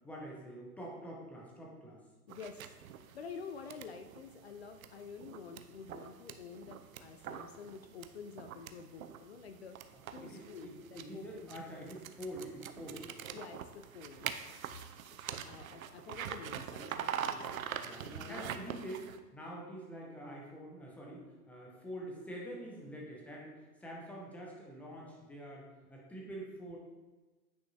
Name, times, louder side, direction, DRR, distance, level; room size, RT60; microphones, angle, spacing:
voice 1, 0.0-2.0 9.9-13.1 17.2-17.3 17.8-19.1 19.3-26.8, right 1 dB, 5° left, -2 dB, 0.7 m, -46 dB
voice 2, 2.3-2.7 3.1-9.8 10.1-11.5 13.3-14.6 15.3-17.4 18.1-18.8, left 5 dB, 45° left, 7 dB, 0.4 m, -49 dB
sound 1, 2.3-19.2, right 9 dB, 60° right, 0.6 m, -44 dB
9.3 x 5.3 x 2.7 m, 1.2 s
hypercardioid pair, 130°, 48 cm